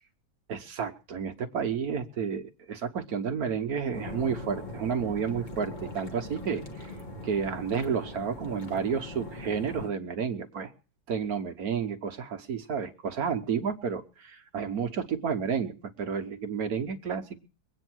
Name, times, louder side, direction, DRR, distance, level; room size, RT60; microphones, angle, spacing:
voice 1, 0.5-6.9 7.2-10.7 11.1-17.4, right 6 dB, 55° right, 7 dB, 1.4 m, -31 dB
sound 1, 3.9-9.9, left 1 dB, 25° left, 2.0 m, -40 dB
22.0 x 9.0 x 6.1 m, 0.36 s
omnidirectional pair, 2.1 m